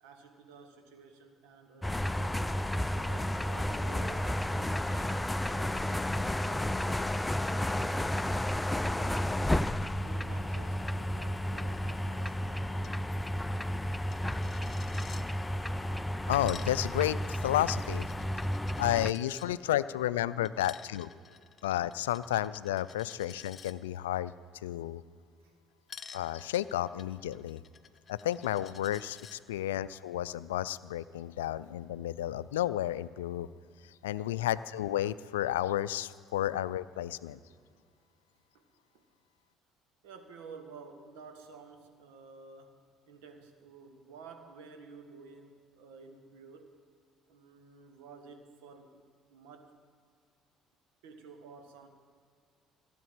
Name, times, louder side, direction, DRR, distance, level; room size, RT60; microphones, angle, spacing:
voice 1, 0.0-2.5 2.9-5.2 5.5-7.2 10.0-13.0 18.2-19.2 19.6-20.0 20.3-21.7 25.4-25.5 34.0-34.1 37.2-37.8 38.5-39.0 40.0-46.7 47.3-49.0 49.3-49.8 51.0-51.9, right 5 dB, 75° right, 7 dB, 1.6 m, -53 dB
sound 1, 1.8-19.1, left 1 dB, 10° left, 0.5 m, -32 dB
Coin (dropping), 12.8-13.0 13.2-13.3 13.6-15.2 16.2-19.5 20.4-23.7 25.9-29.4, left 6 dB, 40° left, 0.9 m, -52 dB
voice 2, 15.8-18.1 18.8-21.1 21.6-24.3 24.6-25.0 26.1-27.6 28.1-33.5 34.0-37.4, left 13 dB, 85° left, 16 dB, 0.4 m, -32 dB
16.5 x 8.1 x 7.8 m, 2.1 s
hypercardioid pair, 60°, 0 cm